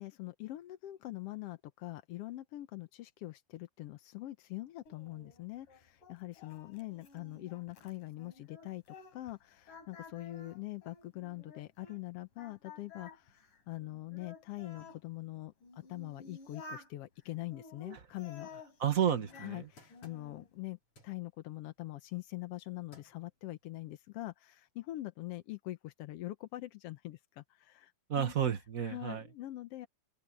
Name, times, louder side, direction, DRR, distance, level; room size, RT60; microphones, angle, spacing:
voice 1, 0.0-8.8 9.1-18.5 19.4-28.3 28.8-29.9, left 17 dB, 75° left, 1.5 m, -43 dB
Singing, 4.9-9.4 9.7-12.0 12.4-15.0 15.6-16.9 17.5-19.5 19.9-20.5, left 3 dB, 90° left, 6.1 m, -53 dB
sound 1, 18.8-20.6 21.0-21.2 22.5-22.6 22.9-23.3 23.8-23.9, left 2 dB, 45° left, 6.6 m, -59 dB
voice 2, 18.8-19.7 28.1-29.2, right 9 dB, 60° right, 0.8 m, -31 dB
open air
omnidirectional pair, 3.6 m